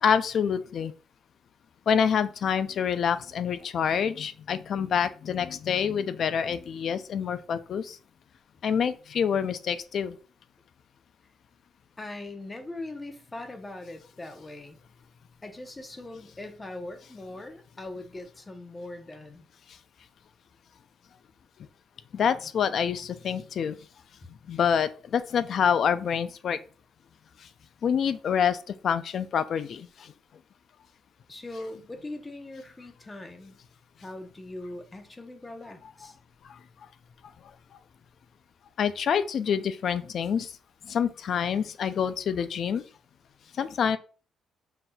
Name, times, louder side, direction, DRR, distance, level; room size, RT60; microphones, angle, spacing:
voice 1, 0.0-0.9 1.9-8.0 8.6-10.2 22.1-23.7 24.5-26.6 27.8-28.6 28.8-30.1 36.5-36.6 38.8-40.5 40.8-42.8 43.6-44.0, left 7 dB, 60° left, 0.4 m, -27 dB
voice 2, 12.0-14.8 15.4-19.5 31.3-33.6 34.0-36.2, left 2 dB, 20° left, 0.7 m, -41 dB
5.8 x 2.6 x 2.3 m
cardioid pair, 90°, 0 cm